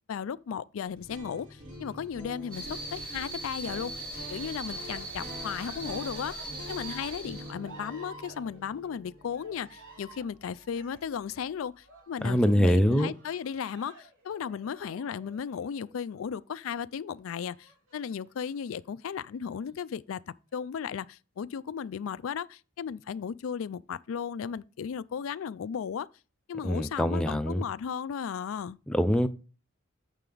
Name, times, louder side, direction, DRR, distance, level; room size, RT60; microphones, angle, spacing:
voice 1, 0.1-26.1 26.5-28.8, left 7 dB, 85° left, 0.4 m, -35 dB
sound 1, 1.0-10.9, equal, 65° right, 5.2 m, -46 dB
sound 2, 2.5-7.5, right 2 dB, 50° right, 2.8 m, -40 dB
Cheering, 4.5-16.2 17.4-18.3 19.0-19.7, right 2 dB, 85° right, 3.3 m, -53 dB
voice 2, 12.2-13.1 26.6-27.6 28.9-29.3, equal, 5° left, 0.5 m, -24 dB
9.1 x 6.7 x 3.9 m
head